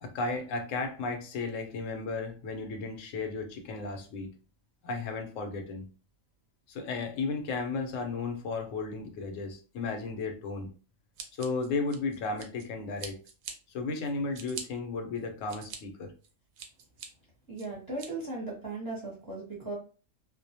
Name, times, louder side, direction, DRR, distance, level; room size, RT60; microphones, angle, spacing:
voice 1, 0.0-4.3 4.8-5.9 6.7-10.7 11.4-13.2 13.7-16.1, left 3 dB, 80° left, 6 dB, 0.9 m, -34 dB
Scissors, 11.2-12.7 13.0-13.5 14.0-14.6 15.2-15.8 16.2-17.1 17.6-18.1, right 6 dB, 90° right, 1.0 m, -43 dB
voice 2, 17.5-19.7, right 2 dB, 20° right, -3 dB, 0.7 m, -37 dB
2.4 x 2.1 x 2.7 m, 0.35 s
omnidirectional pair, 1.3 m